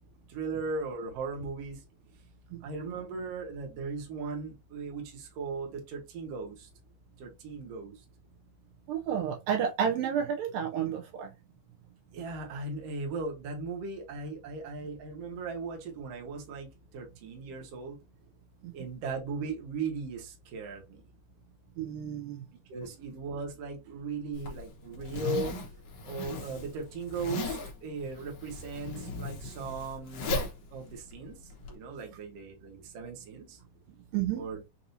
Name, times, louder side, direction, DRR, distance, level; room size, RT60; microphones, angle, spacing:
voice 1, 0.3-1.8 2.6-6.5 7.2-7.9 12.1-16.7 16.9-18.0 18.7-21.0 22.7-25.5 26.1-30.5 30.7-31.4 31.7-33.5 34.3-34.6, right 4 dB, 60° right, 1.9 m, -37 dB
voice 2, 8.9-11.3 21.8-22.4 34.1-34.4, right 8 dB, 80° right, 2.2 m, -30 dB
Zipper (clothing), 24.3-31.7, left 3 dB, 65° left, 1.6 m, -37 dB
6.0 x 2.7 x 2.7 m
omnidirectional pair, 4.2 m